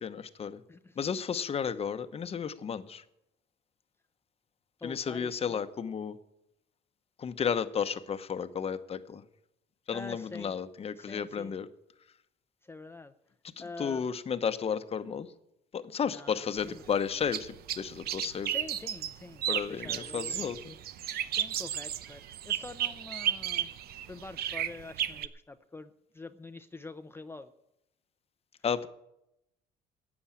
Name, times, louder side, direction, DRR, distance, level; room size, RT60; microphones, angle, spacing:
voice 1, 0.0-0.6 1.0-3.0 4.8-6.2 7.2-9.2 9.9-11.7 13.6-15.3 15.7-18.5 19.5-20.8 28.6-28.9, left 7 dB, 35° left, 11 dB, 1.0 m, -33 dB
voice 2, 4.8-5.6 9.9-10.5 11.0-11.6 12.6-13.1 13.6-14.1 16.1-16.8 18.4-20.4 21.3-23.7 24.1-27.5, left 3 dB, 15° left, 9 dB, 0.6 m, -46 dB
sound 1, 16.6-25.3, right 10 dB, 65° right, 0.8 m, -34 dB
13.5 x 8.8 x 8.6 m, 0.84 s
cardioid pair, 110°, 17 cm